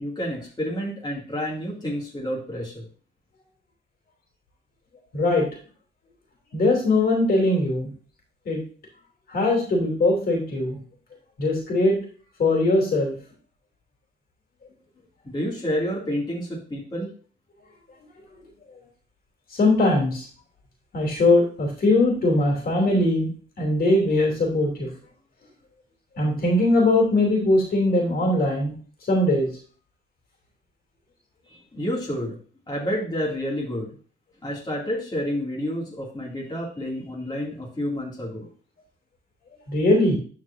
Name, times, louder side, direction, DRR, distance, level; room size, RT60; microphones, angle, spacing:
voice 1, 0.0-2.9 15.2-17.1 31.5-32.4 32.7-33.9 34.4-38.5, equal, 20° left, -4 dB, 2.7 m, -29 dB
voice 2, 5.1-5.5 6.5-7.9 8.4-8.6 9.3-10.8 11.4-12.0 12.4-13.1 19.5-20.2 20.9-23.3 23.6-24.9 26.2-28.7 29.1-29.5 39.7-40.2, left 2 dB, 50° left, -1 dB, 3.1 m, -20 dB
12.0 x 4.8 x 2.7 m, 0.42 s
cardioid pair, 90°, 20 cm